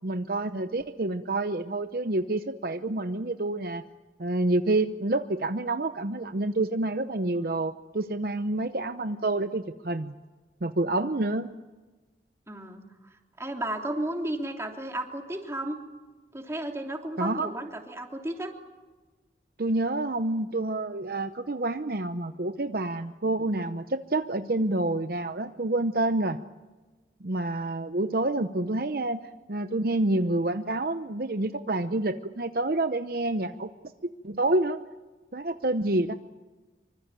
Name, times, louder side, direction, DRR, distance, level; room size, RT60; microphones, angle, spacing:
voice 1, 0.0-3.8 4.2-10.1 10.6-11.5 17.2-17.5 19.6-26.4 27.2-29.2 29.5-33.7 34.2-34.8 35.3-36.1, right 2 dB, 55° right, 9 dB, 0.8 m, -28 dB
voice 2, 12.5-15.8 16.3-18.5, right 1 dB, 15° right, 3 dB, 3.1 m, -34 dB
25.5 x 24.5 x 9.0 m, 1.2 s
head